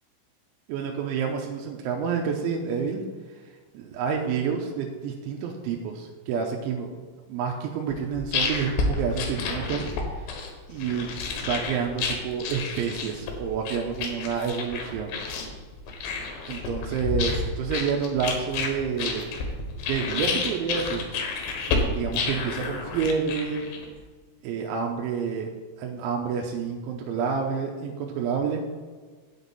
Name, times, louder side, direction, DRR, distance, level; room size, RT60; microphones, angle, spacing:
voice 1, 0.7-3.0 3.7-6.9 7.3-9.9 10.1-10.3 10.7-11.1 11.4-15.2 16.5-19.3 19.9-21.0 21.8-23.6 24.4-25.5 25.8-28.6, right 6 dB, 80° right, 1 dB, 3.1 m, -29 dB
sound 1, 7.9-24.0, left 4 dB, 75° left, 3.3 m, -30 dB
9.2 x 7.9 x 4.1 m, 1.4 s
omnidirectional pair, 5.6 m